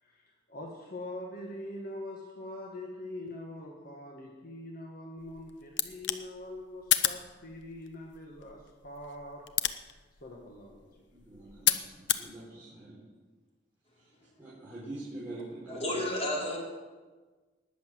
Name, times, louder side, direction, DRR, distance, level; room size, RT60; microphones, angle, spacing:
voice 1, 0.0-9.5 10.2-11.1, left 1 dB, 55° left, 0 dB, 1.7 m, -43 dB
sound 1, 5.2-12.3, left 12 dB, 80° left, 0.8 m, -34 dB
voice 2, 11.1-13.0 13.9-16.0, right 2 dB, 10° right, -11 dB, 4.6 m, -45 dB
voice 3, 15.7-16.6, left 1 dB, 35° left, -3 dB, 4.0 m, -31 dB
19.5 x 7.1 x 7.7 m, 1.3 s
head